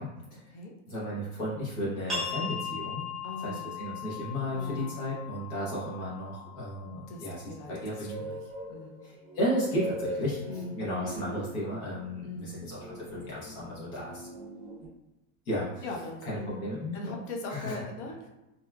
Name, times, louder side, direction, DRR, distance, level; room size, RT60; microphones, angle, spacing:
voice 1, 0.0-0.5 0.9-3.1 3.4-8.2 9.0-14.3 15.4-15.8 16.2-17.1 17.5-17.8, equal, 90° left, -7 dB, 1.1 m, -34 dB
sound 1, 2.1-7.5, left 5 dB, ahead, 0.7 m, -39 dB
voice 2, 3.2-3.6 4.5-5.0 7.1-7.7 8.0-8.4 8.7-9.1 10.4-10.9 12.2-12.6 15.8-16.6 16.9-18.3, left 2 dB, 55° left, 1 dB, 0.6 m, -40 dB
sound 2, 8.1-14.9, right 1 dB, 40° right, 0.5 m, -41 dB
2.8 x 2.3 x 2.2 m, 0.97 s
supercardioid pair, 165°, 43 cm